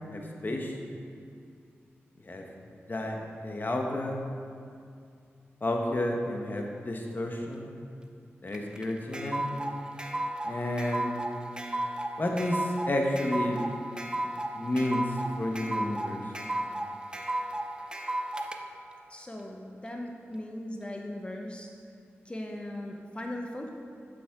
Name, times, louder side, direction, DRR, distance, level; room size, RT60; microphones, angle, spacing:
voice 1, 0.1-0.7 2.3-2.4 2.9-4.2 5.6-7.7 8.4-9.4 10.4-11.1 12.2-13.6 14.5-15.1 15.4-16.2, left 1 dB, 45° left, 1 dB, 1.0 m, -31 dB
sound 1, 8.5-18.6, right 1 dB, 20° right, 0.6 m, -33 dB
voice 2, 19.1-21.7 22.2-23.7, left 1 dB, 20° left, 1 dB, 0.8 m, -38 dB
7.4 x 7.0 x 3.6 m, 2.4 s
cardioid pair, 50°, 5 cm